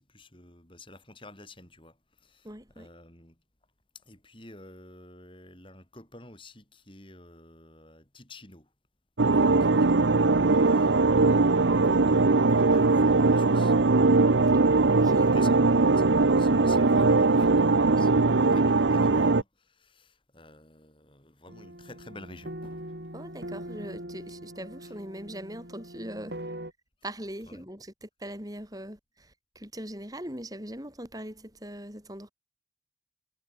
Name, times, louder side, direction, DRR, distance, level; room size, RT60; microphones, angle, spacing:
voice 1, 0.0-3.4 3.9-8.7 9.2-13.7 15.2-23.0 24.8-24.9 27.5-27.6, left 2 dB, 25° left, 7.3 m, -50 dB
voice 2, 2.4-2.9 14.9-15.3 16.6-16.9 23.1-26.4 27.0-32.3, right 1 dB, 20° right, 7.8 m, -41 dB
sound 1, 9.2-19.4, right 3 dB, 80° right, 0.9 m, -21 dB
sound 2, 21.5-26.7, right 1 dB, 60° right, 5.9 m, -42 dB
head